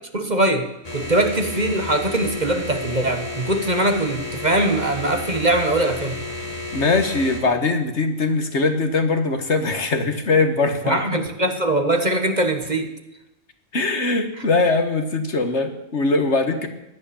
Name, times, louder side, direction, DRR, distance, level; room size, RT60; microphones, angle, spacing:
voice 1, 0.1-6.2 10.8-12.9, right 1 dB, 35° right, 6 dB, 1.6 m, -22 dB
sound 1, 0.8-7.4, left 2 dB, 30° left, 3.5 m, -32 dB
voice 2, 6.7-11.0 13.7-16.7, left 3 dB, 60° left, 7 dB, 1.9 m, -21 dB
17.0 x 11.5 x 7.2 m, 0.95 s
omnidirectional pair, 1.3 m